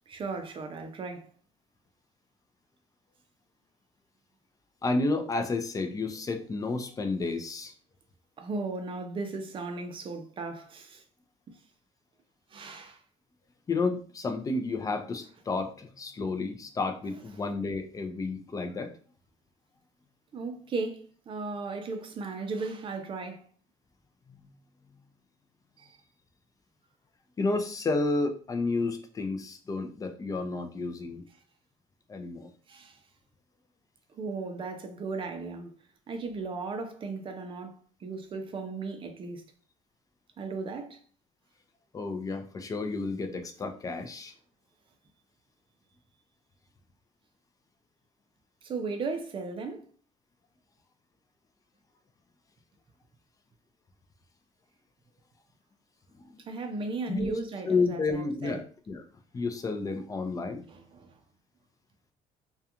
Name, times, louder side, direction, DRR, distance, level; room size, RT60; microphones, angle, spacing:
voice 1, 0.1-1.3 8.4-11.0 11.5-11.6 12.5-13.0 20.3-23.5 25.8-26.0 32.7-33.0 34.1-35.7 36.1-39.4 40.4-41.0 48.6-49.9 56.4-58.6 60.7-61.2, right 3 dB, 35° right, 0.5 m, -36 dB
voice 2, 4.8-7.7 13.7-18.9 24.3-24.5 27.4-31.2 32.1-32.5 41.9-44.3 57.1-57.3 57.7-59.0 59.3-60.6, left 3 dB, 25° left, 0.4 m, -31 dB
2.4 x 2.2 x 2.8 m
cardioid pair, 105°, 14 cm